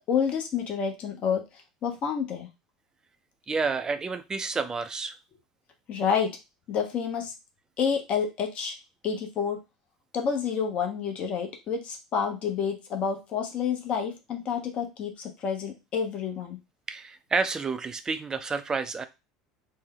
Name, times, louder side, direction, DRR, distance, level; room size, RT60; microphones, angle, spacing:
voice 1, 0.1-1.4 1.8-2.5 5.9-6.3 6.7-7.3 7.8-8.7 9.0-9.6 10.1-16.6, left 7 dB, 45° left, 0.9 m, -29 dB
voice 2, 3.5-5.2 16.9-19.0, right 4 dB, 25° right, 0.5 m, -29 dB
3.3 x 2.2 x 3.7 m
hypercardioid pair, 75°, 3 cm